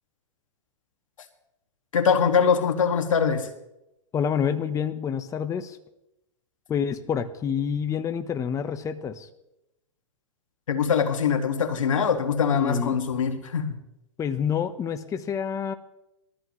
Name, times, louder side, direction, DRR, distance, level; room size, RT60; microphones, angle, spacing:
voice 1, 1.9-3.5 10.7-13.8, left 6 dB, 90° left, 6 dB, 2.1 m, -23 dB
voice 2, 4.1-5.8 6.7-9.3 12.5-13.0 14.2-15.7, left 7 dB, 20° left, 8 dB, 1.1 m, -28 dB
21.5 x 14.0 x 3.2 m, 0.88 s
hypercardioid pair, 130°, 16 cm